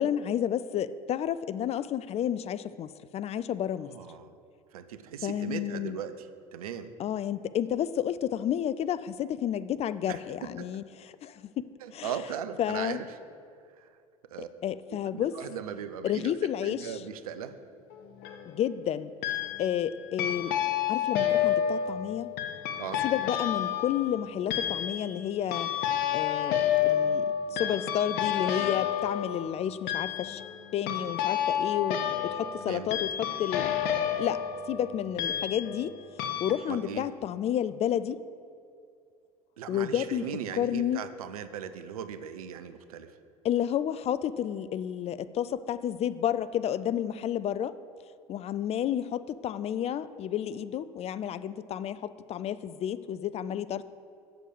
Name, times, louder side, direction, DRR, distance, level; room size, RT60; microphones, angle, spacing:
voice 1, 0.0-3.9 5.2-6.0 7.0-12.1 12.6-13.0 14.4-15.3 16.0-17.0 18.5-19.1 19.6-20.5 20.9-22.3 23.0-25.7 26.1-30.4 30.7-33.7 34.2-36.0 36.4-38.2 39.7-40.3 40.6-41.1 43.4-47.8 48.3-53.9, left 10 dB, 35° left, 15 dB, 0.4 m, -31 dB
voice 2, 3.9-4.3 4.7-6.9 10.1-10.2 10.6-10.7 11.8-13.1 13.8-13.9 14.3-14.5 15.1-16.3 16.6-17.6 22.8-23.0 32.7-32.9 36.7-37.1 39.6-43.2, right 8 dB, 75° right, 11 dB, 0.6 m, -38 dB
sound 1, 17.9-18.5 19.2-19.8 20.2-35.9 36.2-36.5, left 10 dB, 55° left, 0.8 m, -30 dB
7.7 x 6.4 x 6.9 m, 2.4 s
figure-of-eight pair, 70°, 19 cm